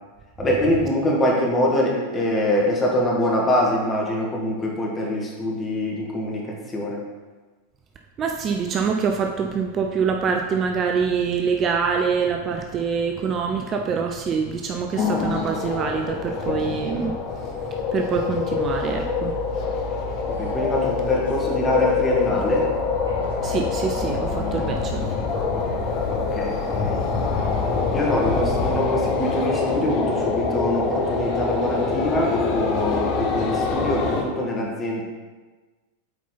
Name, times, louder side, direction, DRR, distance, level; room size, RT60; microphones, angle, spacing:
voice 1, 0.4-7.0 20.3-22.6 26.1-27.0 27.9-35.0, left 1 dB, 20° left, -2 dB, 1.7 m, -24 dB
voice 2, 8.2-19.4 23.4-25.2, right 6 dB, 30° right, 3 dB, 0.6 m, -25 dB
sound 1, 15.0-34.2, left 5 dB, 35° left, 1.0 m, -25 dB
sound 2, 18.6-25.0, right 2 dB, 65° right, 1.2 m, -35 dB
8.0 x 4.6 x 4.0 m, 1.3 s
figure-of-eight pair, 90°, 0 cm